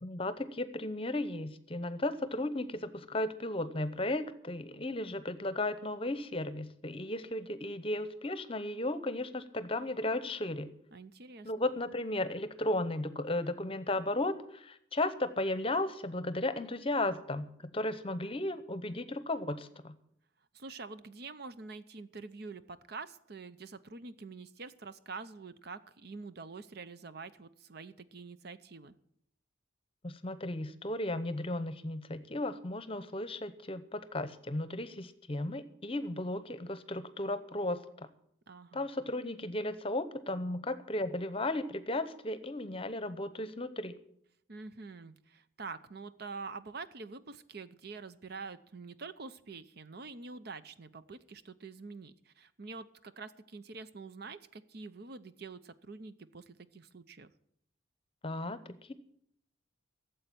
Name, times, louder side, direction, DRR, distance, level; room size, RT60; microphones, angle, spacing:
voice 1, 0.0-10.7 11.4-19.9 30.0-38.1 38.7-43.9 58.2-58.6, left 1 dB, 30° left, 13 dB, 0.8 m, -35 dB
voice 2, 10.9-11.7 20.5-28.9 38.5-38.9 44.5-57.3, right 4 dB, 55° right, 13 dB, 0.7 m, -46 dB
13.5 x 7.8 x 8.6 m, 0.72 s
head